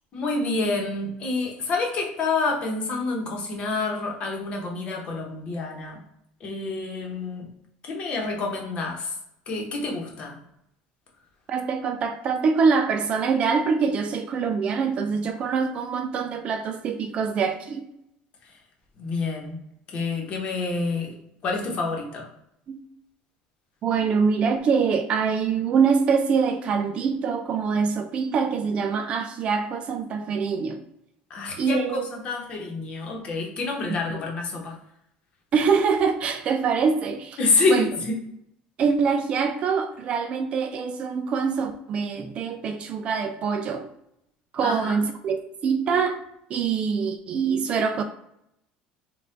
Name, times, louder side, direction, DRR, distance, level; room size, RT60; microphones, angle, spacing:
voice 1, 0.1-6.0 6.4-7.5 7.9-9.1 9.5-10.4 19.0-19.6 19.9-21.1 21.4-22.3 31.3-34.7 37.4-38.2 44.6-45.0, left 3 dB, 35° left, 0 dB, 1.0 m, -27 dB
voice 2, 11.5-17.8 22.7-22.8 23.8-30.8 31.6-32.1 33.9-34.0 35.5-37.4 37.7-37.8 38.8-43.9 44.5-46.2 46.5-48.0, right 5 dB, 35° right, 7 dB, 0.3 m, -24 dB
4.2 x 2.4 x 3.8 m, 0.80 s
cardioid pair, 160°, 3 cm